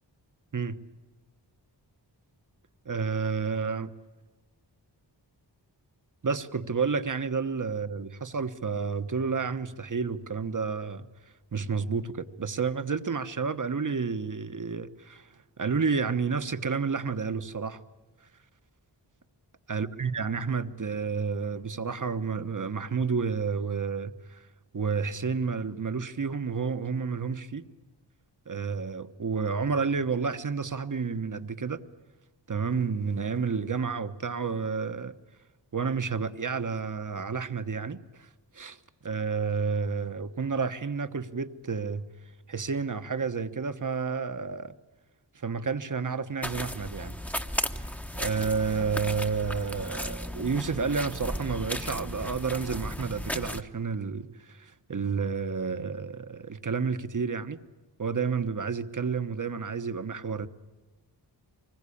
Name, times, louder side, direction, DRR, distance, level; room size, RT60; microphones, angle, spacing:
voice 1, 2.8-3.9 6.2-11.1 11.5-15.3 15.6-17.8 19.7-24.4 24.7-27.6 28.5-31.8 32.5-35.1 35.7-38.3 38.5-38.8 39.0-42.1 42.5-44.7 45.4-47.2 48.2-57.6 58.0-60.5, right 5 dB, 45° right, 1.2 m, -30 dB
sound 1, 46.4-53.6, equal, 5° left, 1.0 m, -35 dB
25.0 x 21.0 x 8.6 m
wide cardioid pair, 65°, 44 cm